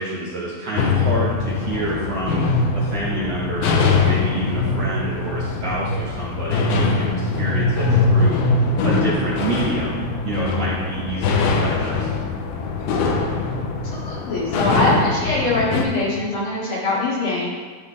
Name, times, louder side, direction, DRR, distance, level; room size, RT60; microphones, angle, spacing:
voice 1, 0.0-2.5 2.7-8.5 8.8-12.1, right 2 dB, 65° right, -6 dB, 1.5 m, -27 dB
sound 1, 0.8-15.9, left 3 dB, 75° left, 2.6 m, -22 dB
voice 2, 13.8-17.5, left 2 dB, 40° left, -7 dB, 2.5 m, -23 dB
14.0 x 5.6 x 3.3 m, 1.5 s
omnidirectional pair, 4.7 m